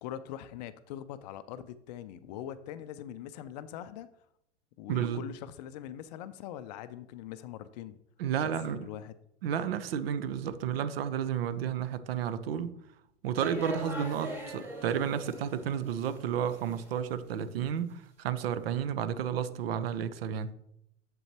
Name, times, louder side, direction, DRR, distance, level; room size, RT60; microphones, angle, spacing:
voice 1, 0.0-4.1 4.8-8.0 8.3-8.5 8.8-9.1, left 11 dB, 40° left, 0.4 m, -42 dB
voice 2, 4.9-5.2 8.2-8.9 9.4-12.7 13.2-20.5, right 8 dB, 55° right, 0.7 m, -32 dB
sound 1, 13.4-16.2 16.5-17.1, right 1 dB, 5° right, 2.9 m, -41 dB
7.9 x 7.6 x 2.9 m
hypercardioid pair, 105°, 35 cm